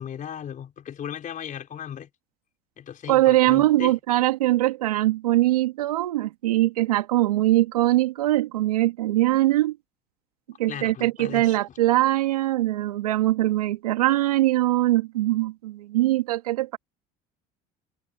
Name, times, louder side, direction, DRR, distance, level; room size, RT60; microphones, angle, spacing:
voice 1, 0.0-2.1 2.8-3.9 10.7-11.6, left 9 dB, 45° left, 4.3 m, -36 dB
voice 2, 3.1-9.8 10.6-16.8, right 16 dB, 90° right, 2.2 m, -22 dB
hypercardioid pair, 75°, 19 cm